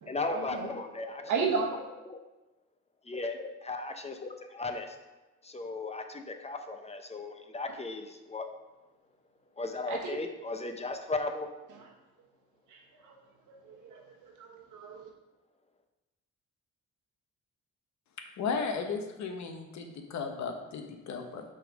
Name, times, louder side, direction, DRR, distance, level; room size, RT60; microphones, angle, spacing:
voice 1, 0.1-2.2 3.0-5.0 5.4-8.5 9.6-11.5, left 3 dB, 20° left, 6 dB, 0.7 m, -36 dB
voice 2, 1.3-1.7 9.9-10.1 12.7-12.8 13.7-15.1, right 5 dB, 80° right, 0 dB, 1.3 m, -33 dB
voice 3, 18.4-21.4, left 5 dB, 65° left, 5 dB, 1.0 m, -35 dB
6.5 x 3.9 x 5.1 m, 1.0 s
cardioid pair, 90°, 30 cm